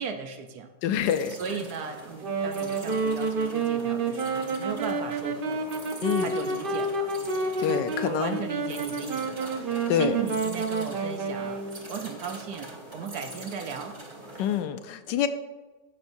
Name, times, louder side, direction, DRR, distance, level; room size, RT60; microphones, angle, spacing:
voice 1, 0.0-0.7 1.3-7.1 7.7-14.0, right 6 dB, 70° right, 6 dB, 1.1 m, -37 dB
voice 2, 0.8-1.3 6.0-6.3 7.6-8.4 9.9-10.2 14.4-15.3, left 9 dB, 80° left, 10 dB, 1.2 m, -26 dB
sound 1, 1.0-14.6, right 2 dB, 30° right, 1.1 m, -44 dB
Wind instrument woodwind instrument, 2.1-11.8, right 3 dB, 85° right, 0.4 m, -29 dB
13.5 x 5.9 x 2.6 m, 1.2 s
omnidirectional pair, 2.0 m